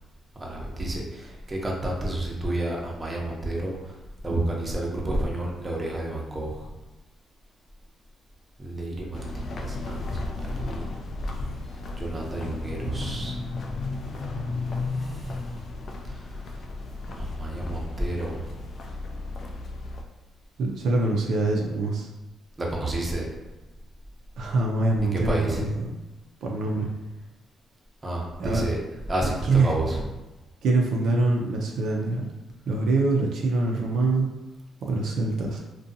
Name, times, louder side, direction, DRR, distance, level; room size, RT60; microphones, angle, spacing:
voice 1, 0.4-4.0 4.2-6.7 8.6-10.9 12.0-13.4 13.9-14.7 15.0-15.4 16.0-16.5 17.1-18.5 22.6-23.3 25.0-25.7 28.0-28.8 29.1-30.1, right 1 dB, 25° right, -2 dB, 0.6 m, -31 dB
sound 1, 9.1-20.0, left 2 dB, 55° left, 0.3 m, -34 dB
voice 2, 20.6-22.1 24.4-25.8 26.4-26.9 28.4-28.7 29.2-29.7 30.6-32.3 32.6-34.3 34.8-35.6, right 3 dB, 70° right, -1 dB, 0.4 m, -24 dB
2.6 x 2.2 x 2.6 m, 1.1 s
cardioid pair, 90°, 0 cm